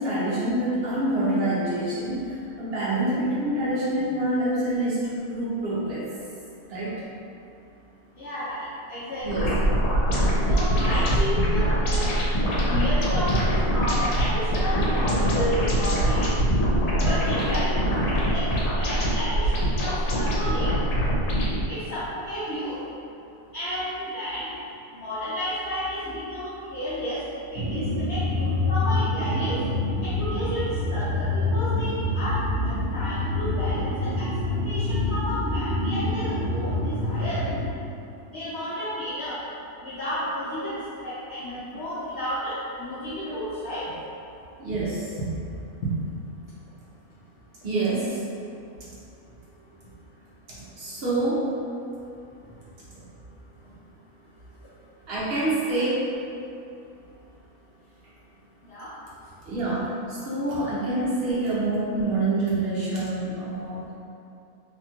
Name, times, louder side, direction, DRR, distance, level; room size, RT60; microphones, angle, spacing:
voice 1, 0.0-6.1 6.7-6.9 9.2-9.5 10.7-10.9 44.6-45.0 47.6-48.2 50.5-51.5 55.1-56.1 59.4-63.8, right 2 dB, 60° right, -9 dB, 0.7 m, -26 dB
voice 2, 8.2-9.5 10.5-12.1 12.7-16.3 17.0-17.8 18.3-18.5 18.8-20.7 21.7-22.8 23.5-24.6 24.9-27.2 27.5-29.6 30.0-37.5 38.3-39.4 39.8-43.9 45.8-45.9 58.7-58.9, equal, 65° left, -10 dB, 0.7 m, -32 dB
sound 1, 9.3-21.6, equal, 80° left, 1.1 m, -23 dB
sound 2, 27.6-37.7, left 2 dB, 80° right, 1.1 m, -26 dB
2.8 x 2.8 x 2.2 m, 2.6 s
omnidirectional pair, 1.6 m